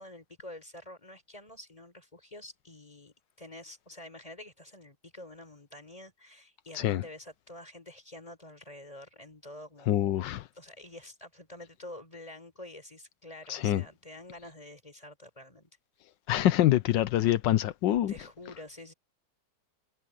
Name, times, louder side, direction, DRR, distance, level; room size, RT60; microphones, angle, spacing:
voice 1, 0.0-10.2 10.5-15.7 18.1-18.9, left 1 dB, 20° left, 4.8 m, -48 dB
voice 2, 9.9-10.4 13.5-13.8 16.3-18.1, left 13 dB, 85° left, 1.4 m, -25 dB
omnidirectional pair, 1.9 m